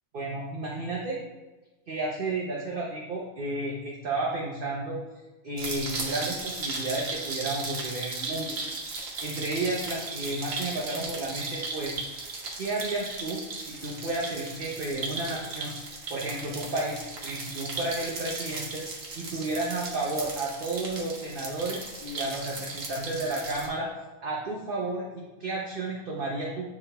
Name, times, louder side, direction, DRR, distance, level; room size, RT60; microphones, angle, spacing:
voice 1, 0.1-1.2 1.9-5.0 5.4-8.6 9.2-11.9 12.5-15.7 16.1-18.8 19.1-23.9 24.2-26.7, right 2 dB, 45° right, -3 dB, 0.9 m, -32 dB
sound 1, 5.6-23.7, right 3 dB, 70° right, 1.5 m, -36 dB
9.2 x 3.6 x 3.3 m, 1.1 s
omnidirectional pair, 1.5 m